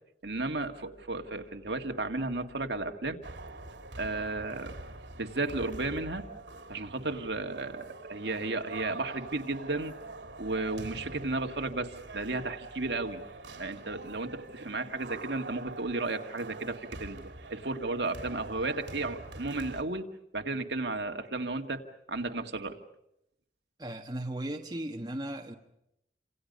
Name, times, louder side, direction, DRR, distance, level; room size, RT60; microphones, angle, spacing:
voice 1, 0.2-3.2 4.0-4.8 5.2-6.3 6.7-9.9 10.4-13.2 13.6-20.0 20.3-22.8, right 2 dB, 70° right, 2.0 m, -34 dB
sound 1, 3.2-19.8, right 2 dB, 90° right, 3.0 m, -45 dB
voice 2, 23.8-25.5, right 1 dB, 25° right, 1.5 m, -36 dB
29.0 x 27.0 x 5.5 m
head